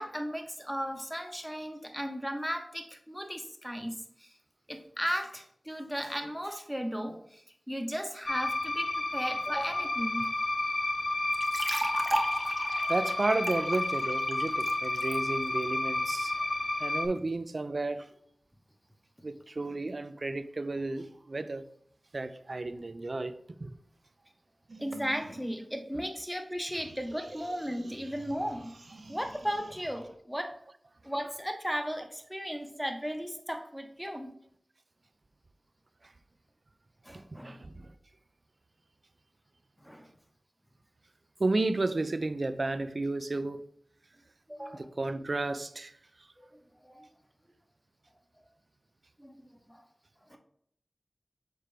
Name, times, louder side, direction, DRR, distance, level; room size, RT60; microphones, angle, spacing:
voice 1, 0.0-4.4 4.7-10.3 24.8-28.7 29.1-30.6 31.0-34.3 37.0-37.6 39.8-40.1 44.5-44.9 46.4-47.1 49.2-49.8 50.3-50.4, equal, ahead, 1.0 m, -36 dB
sound 1, 8.2-17.1, left 2 dB, 55° left, 0.7 m, -31 dB
sound 2, 11.3-15.2, right 1 dB, 40° right, 0.8 m, -35 dB
voice 2, 12.9-16.3 16.8-18.1 19.2-21.6 22.1-23.7 37.3-37.9 41.4-43.6 44.7-45.9, right 2 dB, 60° right, 0.4 m, -32 dB
sound 3, 24.7-26.3 26.7-30.2, right 2 dB, 75° right, 0.8 m, -50 dB
6.7 x 4.4 x 3.3 m
wide cardioid pair, 50°, 0 cm